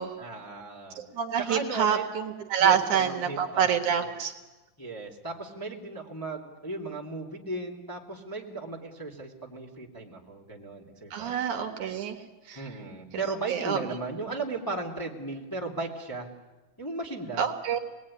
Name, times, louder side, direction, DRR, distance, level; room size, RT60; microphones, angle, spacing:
voice 1, 0.2-1.0 1.4-2.1 2.6-4.1 4.8-11.4 12.5-16.3 16.8-17.5, right 3 dB, 5° left, -1 dB, 2.0 m, -36 dB
voice 2, 1.0-4.3 11.1-12.2 12.5-12.7 13.5-13.8 17.4-17.8, right 8 dB, 65° right, 5 dB, 2.7 m, -27 dB
26.0 x 19.5 x 9.7 m, 1.2 s
omnidirectional pair, 3.8 m